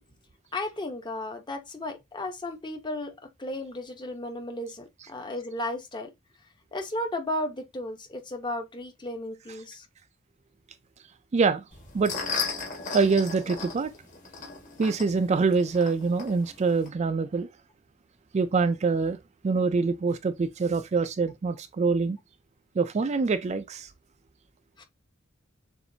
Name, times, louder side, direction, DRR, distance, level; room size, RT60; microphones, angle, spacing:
voice 1, 0.5-3.1 3.4-6.1 6.7-9.9 24.8-24.9, left 1 dB, 20° left, 0.8 m, -34 dB
voice 2, 11.3-11.6 11.9-12.1 12.9-13.9 14.8-17.5 18.3-19.2 19.4-22.2 22.8-23.9, right 4 dB, 35° right, 0.3 m, -25 dB
sound 1, 11.7-16.9, left 4 dB, 40° left, 1.6 m, -36 dB
6.9 x 2.6 x 2.7 m
head